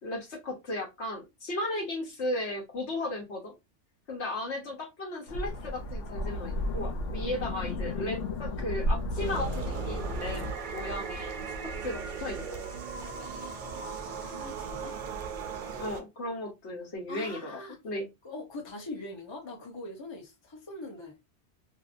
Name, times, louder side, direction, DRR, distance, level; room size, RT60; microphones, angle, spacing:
voice 1, 0.0-3.5 4.1-10.4 10.7-11.4 11.8-12.6 15.8-17.6 17.8-18.1, left 1 dB, 70° left, 1.4 m, -35 dB
sound 1, 5.3-10.5, left 1 dB, 85° left, 0.9 m, -33 dB
sound 2, 9.2-16.0, right 5 dB, 55° right, 0.6 m, -38 dB
voice 2, 13.2-15.0 17.1-17.8 18.2-21.1, left 2 dB, 25° left, 0.7 m, -43 dB
2.8 x 2.6 x 2.5 m
omnidirectional pair, 1.2 m